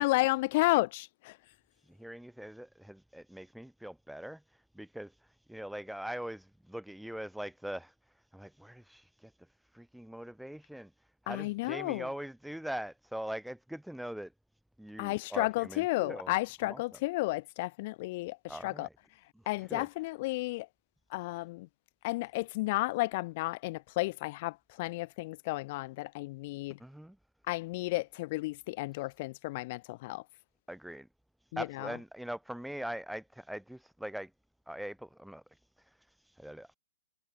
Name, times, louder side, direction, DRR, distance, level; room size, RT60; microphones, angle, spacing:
voice 1, 0.0-1.4 11.3-12.0 15.0-18.9 19.5-20.7 21.1-21.7 22.0-26.8 27.5-30.2 31.5-31.9, left 21 dB, 45° left, 0.5 m, -32 dB
voice 2, 1.9-4.4 4.7-5.1 5.5-7.9 8.3-9.3 9.7-10.9 11.2-14.3 14.8-16.3 16.6-16.8 18.5-18.9 19.3-19.4 19.7-19.9 26.8-27.2 30.7-31.1 31.6-34.3 34.7-35.4 36.4-36.7, equal, ahead, 3.0 m, -42 dB
figure-of-eight pair, 115°, 0 cm